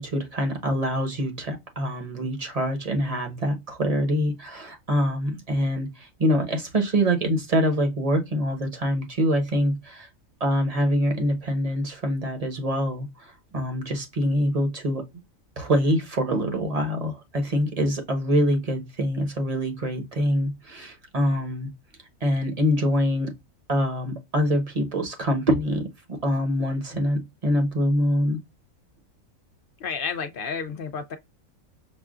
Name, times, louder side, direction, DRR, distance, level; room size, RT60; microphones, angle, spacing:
voice 1, 0.0-10.1 10.4-15.0 15.6-21.7 22.2-23.3 23.7-28.4, equal, 30° right, 0.9 m, -25 dB
voice 2, 29.8-31.2, left 5 dB, 65° left, 0.5 m, -31 dB
6.1 x 2.2 x 2.4 m
omnidirectional pair, 1.4 m